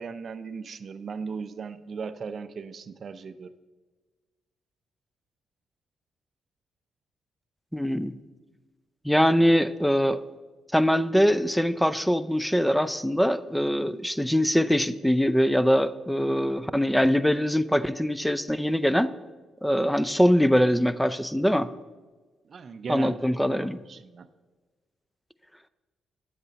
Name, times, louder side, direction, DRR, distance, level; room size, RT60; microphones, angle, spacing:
voice 1, 0.0-3.5 22.5-24.3, right 5 dB, 55° right, 12 dB, 0.5 m, -38 dB
voice 2, 7.7-8.2 9.0-10.2 10.7-19.1 19.6-21.7 22.9-23.8, equal, 5° left, 14 dB, 0.5 m, -23 dB
10.0 x 7.7 x 4.1 m, 1.3 s
supercardioid pair, 60°, 0 cm